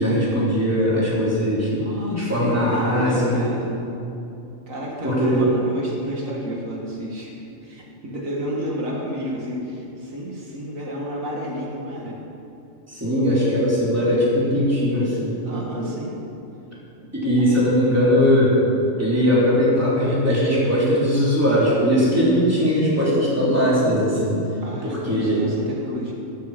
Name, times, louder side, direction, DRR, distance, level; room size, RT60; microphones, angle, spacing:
voice 1, 0.0-1.7 2.1-3.5 5.0-5.5 12.9-15.4 17.1-18.6 19.0-24.4 24.8-25.5, equal, 10° right, -7 dB, 3.8 m, -20 dB
voice 2, 1.7-3.7 4.7-7.3 7.6-12.2 15.4-16.2 17.0-17.1 17.5-17.6 24.6-26.1, equal, 85° right, -2 dB, 2.3 m, -30 dB
13.5 x 12.5 x 5.2 m, 2.8 s
omnidirectional pair, 1.4 m